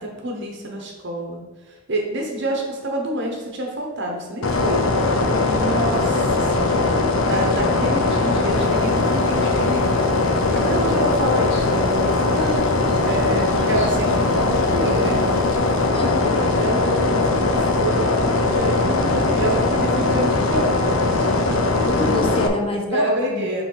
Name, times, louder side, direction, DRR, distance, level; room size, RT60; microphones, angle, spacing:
voice 1, 0.0-1.4 1.9-4.8 5.4-6.7 7.2-9.9 10.5-12.6 13.0-15.2 16.4-21.6 22.9-23.6, right 1 dB, 55° right, 1 dB, 1.1 m, -27 dB
sound 1, 4.4-22.5, left 3 dB, 75° left, 0.6 m, -20 dB
sound 2, 8.5-15.9, equal, 50° left, 1.9 m, -41 dB
voice 2, 15.9-16.6 21.9-23.6, left 1 dB, 25° left, 1 dB, 0.7 m, -26 dB
4.7 x 3.8 x 5.6 m, 1.3 s
head